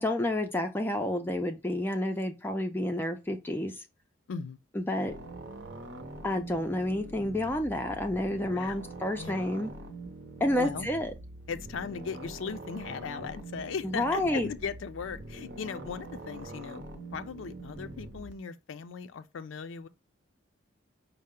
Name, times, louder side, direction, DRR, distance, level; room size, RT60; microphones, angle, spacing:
voice 1, 0.0-3.7 4.8-5.1 6.2-9.7 10.4-11.1 13.8-14.5, left 1 dB, 10° left, 0.4 m, -30 dB
sound 1, 5.1-18.3, right 2 dB, 60° right, 0.7 m, -44 dB
voice 2, 9.2-9.5 10.6-10.9 11.5-16.8 17.1-19.9, left 5 dB, 80° left, 0.4 m, -38 dB
5.4 x 2.0 x 3.6 m
head